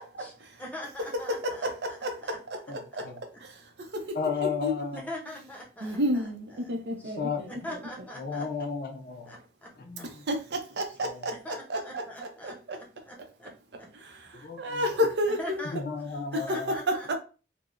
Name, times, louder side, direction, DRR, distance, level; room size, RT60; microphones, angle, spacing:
voice 1, 0.6-2.4 5.1-6.7 7.0-7.2 7.6-8.5 9.3-9.7 10.0-10.1 11.4-12.5 12.8-13.5 13.8-13.9 15.4-15.8 16.3-17.2, left 1 dB, 10° left, 0.6 m, -42 dB
voice 2, 1.3-2.1 2.7-2.8 4.6-5.0 5.8-7.8 10.3-12.0 14.6-15.6 16.3-17.2, equal, 75° right, 0.6 m, -30 dB
voice 3, 2.7-3.2 4.1-5.1 7.2-7.4 8.2-9.4 9.8-10.2 11.0-11.4 14.4-14.6 15.7-16.8, left 5 dB, 50° left, 0.4 m, -33 dB
3.4 x 2.0 x 2.4 m
head